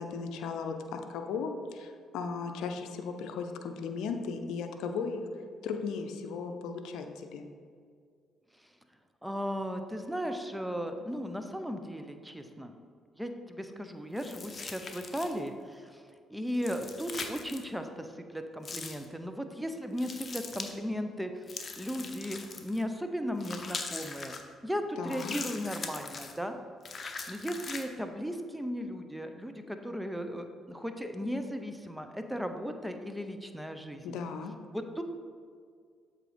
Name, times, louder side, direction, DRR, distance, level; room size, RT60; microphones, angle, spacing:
voice 1, 0.0-5.2 5.6-7.4 25.0-25.3 34.0-34.5, left 5 dB, 75° left, 5 dB, 0.6 m, -36 dB
voice 2, 9.2-12.7 13.2-16.0 16.3-21.4 21.8-24.3 24.6-26.6 27.3-34.1 34.7-35.0, equal, 5° right, 7 dB, 0.7 m, -36 dB
sound 1, 14.2-15.5 16.5-17.7 18.6-19.1 20.0-20.7 21.5-22.8 23.4-24.4 25.1-26.4 26.8-27.9, left 4 dB, 40° left, 0.8 m, -41 dB
7.5 x 3.8 x 5.1 m, 2.1 s
hypercardioid pair, 55°, 0 cm